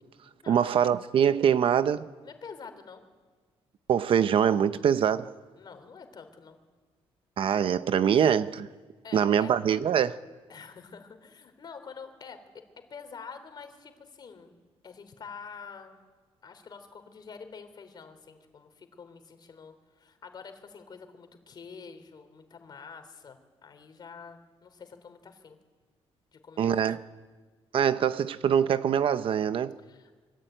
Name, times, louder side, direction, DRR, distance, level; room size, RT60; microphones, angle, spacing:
voice 1, 0.5-2.1 3.9-5.3 7.4-8.7 9.1-10.2 26.6-27.0 27.7-29.8, right 8 dB, 55° right, 0.8 m, -24 dB
voice 2, 2.2-3.1 5.5-6.6 9.0-9.5 10.5-12.4 12.9-14.5 14.8-16.0 16.4-25.6 26.3-26.9 29.8-30.3, left 5 dB, 40° left, 3.4 m, -47 dB
25.5 x 23.5 x 9.2 m
cardioid pair, 150°, 11 cm